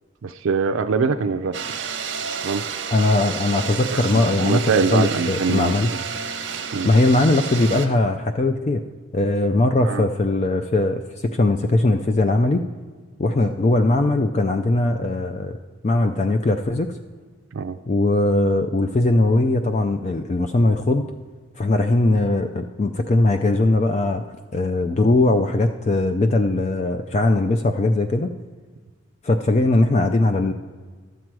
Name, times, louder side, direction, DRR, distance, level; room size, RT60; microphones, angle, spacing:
voice 1, 0.2-1.6 2.4-2.6 3.9-5.7 6.7-6.9 9.8-10.0 17.5-17.8, right 5 dB, 80° right, 9 dB, 0.4 m, -23 dB
sound 1, 1.5-7.9, right 6 dB, 60° right, 0.9 m, -30 dB
voice 2, 2.9-5.9 6.8-8.8 9.1-12.6 13.2-15.6 15.8-16.9 17.9-21.1 21.6-24.2 24.5-28.3 29.2-30.5, left 2 dB, 35° left, 7 dB, 0.4 m, -20 dB
12.5 x 7.5 x 4.6 m, 1.5 s
head